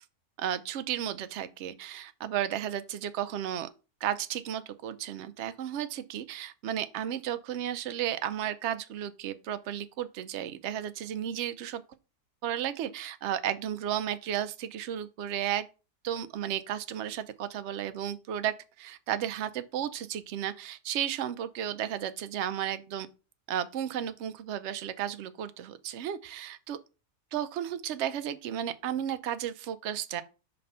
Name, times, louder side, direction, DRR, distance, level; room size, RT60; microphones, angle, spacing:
voice 1, 0.4-3.7 4.0-11.8 12.4-15.7 16.0-23.1 23.5-26.8 27.3-30.2, right 10 dB, 65° right, 0.7 m, -33 dB
5.4 x 3.3 x 5.4 m
omnidirectional pair, 1.6 m